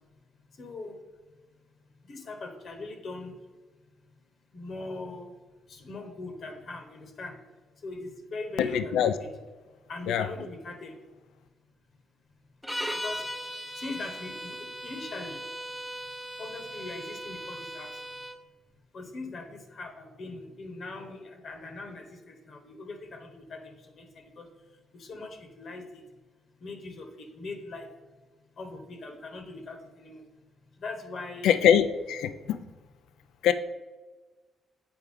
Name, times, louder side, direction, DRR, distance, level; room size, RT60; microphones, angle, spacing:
voice 1, 0.6-1.0 2.0-3.3 4.5-5.3 5.7-7.4 7.8-9.3 9.9-11.0 13.0-13.2 13.8-15.4 16.4-17.9 18.9-24.5 24.9-26.0 26.6-27.9 28.6-30.2 30.8-31.6, left 3 dB, 55° left, 4 dB, 1.0 m, -40 dB
voice 2, 8.6-9.1 10.1-10.3 31.4-32.6 33.4-33.5, left 9 dB, 85° left, 11 dB, 0.3 m, -23 dB
sound 1, 12.6-18.4, equal, ahead, 0.6 m, -38 dB
8.0 x 4.6 x 3.6 m, 1.3 s
cardioid pair, 90°, 0 cm